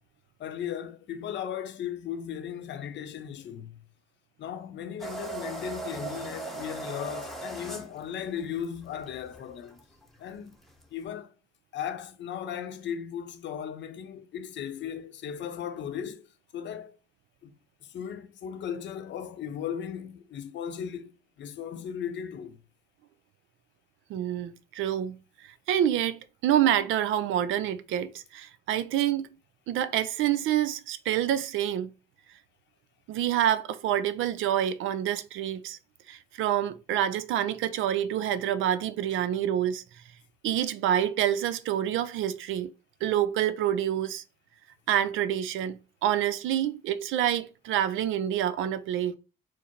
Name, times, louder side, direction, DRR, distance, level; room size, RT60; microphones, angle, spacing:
voice 1, 0.4-3.8 4.4-9.8 10.2-10.6 10.9-11.3 11.7-16.3 16.5-17.0 17.4-17.5 17.8-21.1 21.4-22.6, left 8 dB, 65° left, 0.6 m, -36 dB
sound 1, 5.0-11.0, right 3 dB, ahead, 0.9 m, -39 dB
voice 2, 24.1-29.3 29.7-31.9 33.1-35.8 36.1-39.8 40.4-42.7 43.0-44.2 44.9-49.1, right 11 dB, 85° right, 0.4 m, -27 dB
4.6 x 2.0 x 4.3 m
cardioid pair, 90°, 20 cm